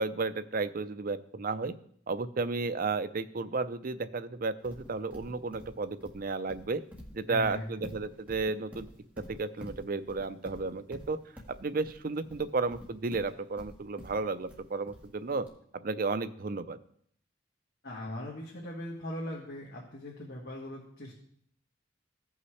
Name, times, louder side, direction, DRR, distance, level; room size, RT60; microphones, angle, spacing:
voice 1, 0.0-1.7 2.1-6.8 7.1-8.9 9.2-11.2 11.6-15.5 15.8-16.8, right 3 dB, 45° right, 12 dB, 0.5 m, -33 dB
Livestock farm animals working animals, 4.6-15.5, equal, 10° right, 1.6 m, -48 dB
voice 2, 7.3-7.7 17.8-21.1, left 1 dB, 55° left, -4 dB, 1.8 m, -40 dB
16.0 x 5.6 x 3.2 m, 0.64 s
head